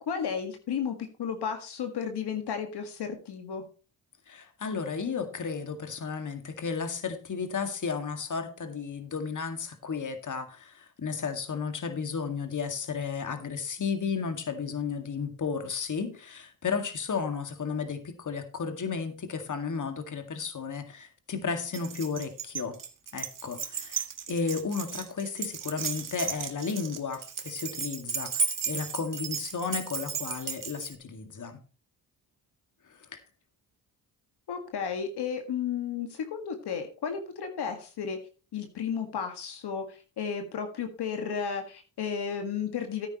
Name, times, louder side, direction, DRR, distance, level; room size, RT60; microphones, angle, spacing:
voice 1, 0.1-3.6 34.5-38.2 38.5-43.1, left 7 dB, 70° left, 6 dB, 1.9 m, -33 dB
voice 2, 4.3-22.8 23.1-31.6 32.9-33.2, left 5 dB, 45° left, 8 dB, 2.1 m, -33 dB
Keys jangling, 21.7-30.9, right 6 dB, 50° right, 1.7 m, -34 dB
14.0 x 9.5 x 3.0 m, 0.34 s
cardioid pair, 70°, 41 cm